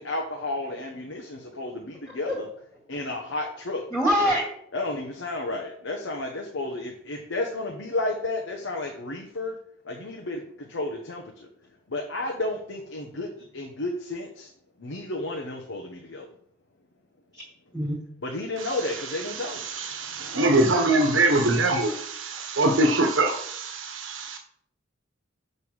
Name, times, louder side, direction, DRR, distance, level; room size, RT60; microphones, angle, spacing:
voice 1, 0.0-2.5 2.9-3.8 4.7-9.6 9.8-11.5 11.9-14.5 14.8-16.3 18.2-20.4, left 2 dB, 80° left, 1 dB, 1.2 m, -32 dB
voice 2, 3.9-4.5 17.3-17.4 17.7-18.0 20.3-20.4, equal, ahead, -4 dB, 1.8 m, -24 dB
voice 3, 18.6-24.4, right 2 dB, 80° right, 4 dB, 1.3 m, -24 dB
6.7 x 5.4 x 6.4 m, 0.65 s
head